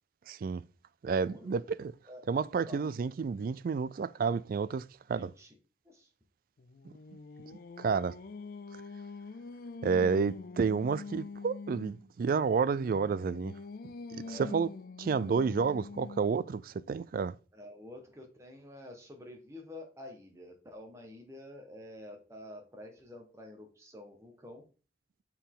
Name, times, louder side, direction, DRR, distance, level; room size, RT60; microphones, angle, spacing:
voice 1, 0.3-0.6 1.0-1.9 2.3-5.3 7.8-8.2 9.8-13.5 14.1-14.7 15.0-17.3, right 5 dB, 50° right, 0.3 m, -30 dB
voice 2, 1.3-1.6 2.1-2.2 2.7-2.8 5.2-5.5 5.8-6.1 14.2-14.5 17.5-24.6, left 1 dB, 15° right, 1.4 m, -49 dB
Singing, 6.6-12.0 12.6-16.5, left 4 dB, 55° left, 0.4 m, -45 dB
7.0 x 4.4 x 3.8 m
head